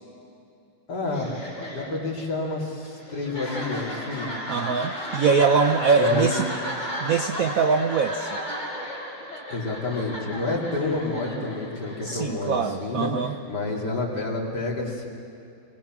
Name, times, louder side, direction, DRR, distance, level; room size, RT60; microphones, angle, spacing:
voice 1, 0.9-4.3 6.0-6.4 9.5-13.1 13.5-15.1, left 2 dB, 55° left, -2 dB, 3.2 m, -29 dB
sound 1, 1.1-12.8, equal, 35° left, 4.1 m, -34 dB
voice 2, 4.5-6.5 7.0-8.4 12.0-13.4, right 5 dB, 65° right, 4 dB, 0.8 m, -23 dB
23.0 x 19.0 x 6.0 m, 2.6 s
omnidirectional pair, 2.1 m